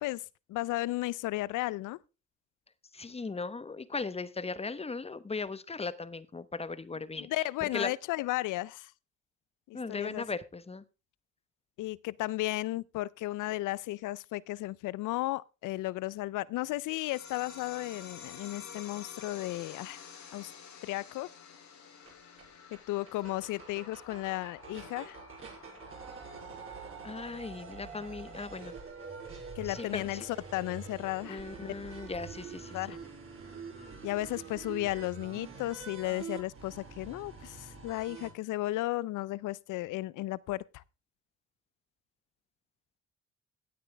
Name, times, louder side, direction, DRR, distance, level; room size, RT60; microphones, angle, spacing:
voice 1, 0.5-2.0 7.2-8.9 9.7-10.2 11.8-20.0 20.3-20.5 20.8-21.3 22.7-25.2 29.6-31.5 32.7-33.0 34.0-40.8, left 17 dB, 90° left, 0.5 m, -34 dB
voice 2, 2.9-7.3 7.6-7.9 9.7-10.8 27.0-28.7 29.6-30.3 31.3-33.0, left 4 dB, 20° left, 1.0 m, -38 dB
sound 1, 16.8-27.8, left 6 dB, 70° left, 3.9 m, -50 dB
sound 2, 22.1-22.2 22.4-22.5 22.7-22.8 23.1-38.3, right 5 dB, 45° right, 5.9 m, -46 dB
16.5 x 8.8 x 3.4 m
cardioid pair, 90°, 30 cm